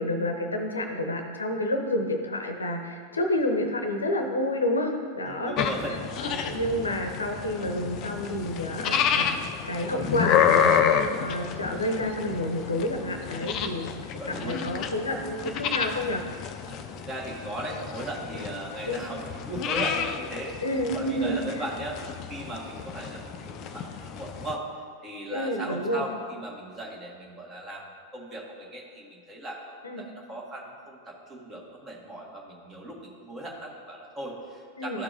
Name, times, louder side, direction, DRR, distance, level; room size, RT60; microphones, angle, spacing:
voice 1, 0.0-13.9 14.3-16.2 18.3-18.4 18.9-19.0 20.6-21.6 25.3-26.0 29.8-30.0 34.8-35.0, left 1 dB, 75° left, 4 dB, 0.7 m, -29 dB
voice 2, 5.2-6.0 14.2-14.6 16.7-20.7 20.9-22.0 22.3-24.6 25.0-35.0, right 1 dB, 20° right, -2 dB, 1.6 m, -37 dB
sound 1, 5.6-24.6, left 8 dB, 35° left, 0.5 m, -30 dB
12.5 x 4.6 x 2.6 m, 2.2 s
figure-of-eight pair, 90°, 0 cm